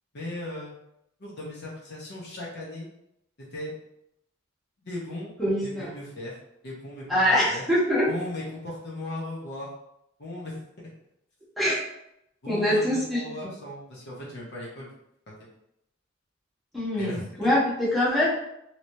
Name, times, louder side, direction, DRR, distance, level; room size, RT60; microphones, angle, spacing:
voice 1, 0.1-0.7 1.2-2.9 3.5-3.7 4.8-5.3 5.6-6.4 6.6-7.6 8.1-9.7 10.2-10.9 12.4-12.8 13.1-15.0 15.3-15.4 17.0-17.5, left 1 dB, 60° left, -4 dB, 0.9 m, -37 dB
voice 2, 5.4-5.9 7.1-8.1 11.6-11.8 12.5-13.5 16.7-18.3, equal, ahead, -10 dB, 1.3 m, -24 dB
3.2 x 2.9 x 2.7 m, 0.80 s
head